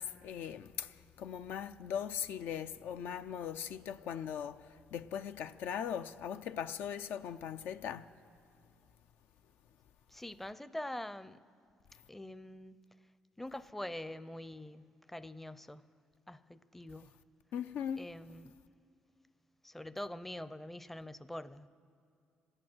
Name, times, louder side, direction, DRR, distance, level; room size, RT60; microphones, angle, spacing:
voice 1, 0.0-8.1 17.5-18.1, left 8 dB, 75° left, 0.4 m, -39 dB
voice 2, 10.1-11.4 12.1-12.8 13.4-15.9 16.3-17.2 18.0-18.5 19.6-21.7, left 1 dB, 5° left, 0.5 m, -44 dB
25.5 x 8.7 x 6.1 m
cardioid pair, 80°, 3 cm